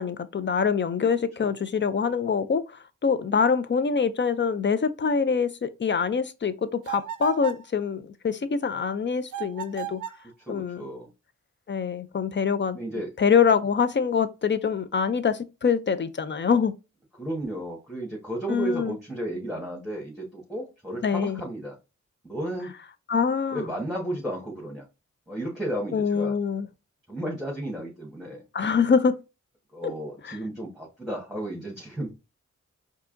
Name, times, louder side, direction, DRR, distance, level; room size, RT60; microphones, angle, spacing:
voice 1, 0.0-10.0 10.5-10.8 11.7-12.8 13.2-16.7 18.5-19.0 21.0-21.4 23.1-23.6 25.9-26.7 28.5-29.2 29.8-29.9 30.2-30.4, left 6 dB, 40° left, 0.5 m, -25 dB
sound 1, 6.8-7.7 9.3-10.3, right 11 dB, 80° right, 0.5 m, -35 dB
voice 2, 10.4-11.1 12.7-13.1 17.2-21.8 22.2-22.7 23.5-24.8 25.3-26.3 27.1-28.4 29.7-32.1, right 1 dB, ahead, 1.4 m, -33 dB
4.7 x 2.8 x 2.6 m
cardioid pair, 55°, 30 cm